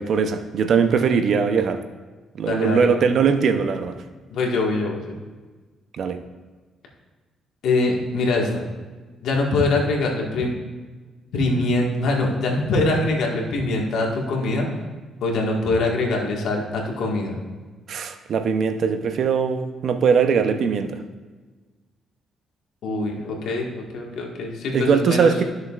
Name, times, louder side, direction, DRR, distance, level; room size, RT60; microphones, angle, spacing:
voice 1, 0.0-1.8 2.4-4.0 5.9-6.2 17.9-21.0 24.7-25.4, right 6 dB, 60° right, 8 dB, 0.7 m, -20 dB
voice 2, 2.4-2.9 4.3-5.1 7.6-8.6 9.2-10.5 11.3-14.7 15.2-17.3 22.8-25.3, left 2 dB, 75° left, 0 dB, 1.6 m, -23 dB
13.5 x 6.4 x 2.4 m, 1.3 s
cardioid pair, 90°, 0 cm